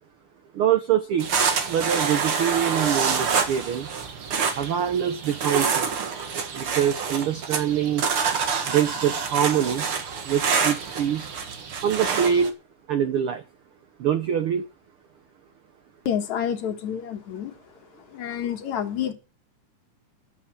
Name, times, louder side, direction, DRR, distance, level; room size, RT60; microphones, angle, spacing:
voice 1, 0.5-1.3 1.7-3.9 4.6-5.9 6.5-8.1 8.7-9.9 10.3-11.3 11.8-12.5 12.9-13.4 14.0-14.6, right 9 dB, 90° right, 10 dB, 1.2 m, -24 dB
sound 1, 1.2-12.5, right 5 dB, 50° right, 2.1 m, -27 dB
voice 2, 16.1-17.5 18.1-19.1, left 9 dB, 65° left, 6 dB, 2.6 m, -28 dB
11.5 x 8.5 x 7.3 m, 0.33 s
omnidirectional pair, 3.7 m